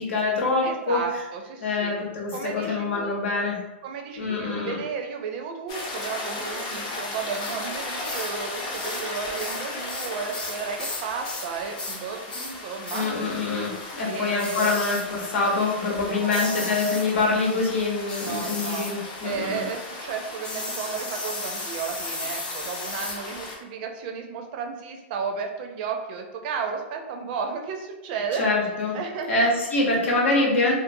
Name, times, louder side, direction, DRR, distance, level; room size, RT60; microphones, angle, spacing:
voice 1, 0.0-1.0 1.6-3.6 4.2-4.8 12.9-19.6 28.4-29.0 29.3-30.7, left 3 dB, 75° left, -2 dB, 0.9 m, -25 dB
voice 2, 0.6-2.1 2.3-3.1 3.8-13.1 14.1-14.8 16.0-16.8 18.2-18.9 19.2-28.4 28.9-29.4 30.1-30.3, right 6 dB, 50° right, 3 dB, 0.5 m, -33 dB
sound 1, 5.7-23.6, left 2 dB, 45° left, 0.8 m, -36 dB
sound 2, 7.3-7.6 8.0-8.4 8.7-9.1 9.4-11.5 11.8-12.0 12.3-12.6 12.9-13.1 14.4-15.1 16.3-17.1 18.1-19.0 20.4-23.2, left 2 dB, 15° left, 0.4 m, -35 dB
2.6 x 2.4 x 2.6 m, 1.0 s
hypercardioid pair, 135°, 7 cm